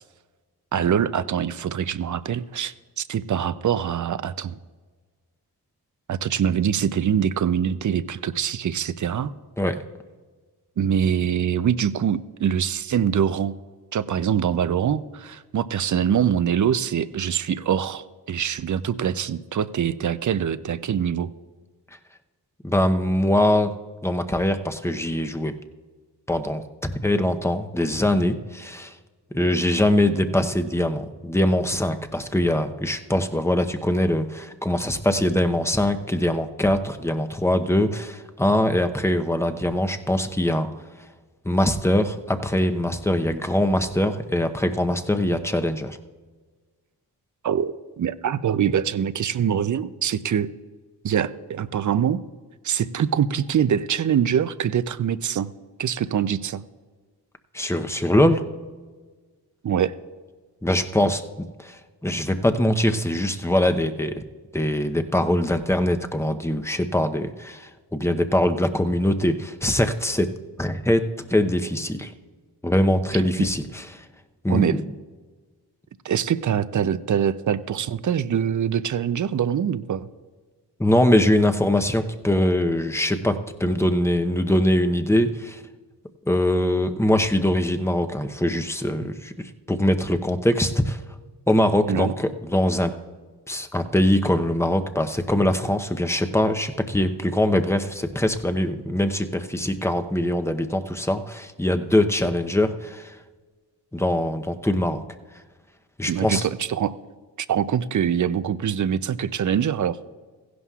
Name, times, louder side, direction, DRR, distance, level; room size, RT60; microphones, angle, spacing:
voice 1, 0.7-4.6 6.1-9.3 10.8-13.6 13.9-21.3 47.4-50.5 51.0-52.2 52.6-55.5 55.8-56.6 59.6-59.9 73.1-73.5 74.5-74.8 76.0-80.1 91.9-92.1 106.1-106.9 107.5-110.0, right 8 dB, 50° right, 15 dB, 0.5 m, -24 dB
voice 2, 22.6-23.7 24.0-25.5 26.3-28.9 29.3-40.7 41.4-46.0 57.5-58.4 60.6-61.8 62.0-64.2 64.5-70.3 70.6-72.1 72.6-74.0 74.4-74.8 80.8-85.6 86.3-91.0 91.5-92.9 93.5-103.1 103.9-105.0 106.0-106.5, left 1 dB, 5° left, 7 dB, 0.8 m, -22 dB
15.5 x 11.0 x 2.4 m, 1.4 s
cardioid pair, 60°, 41 cm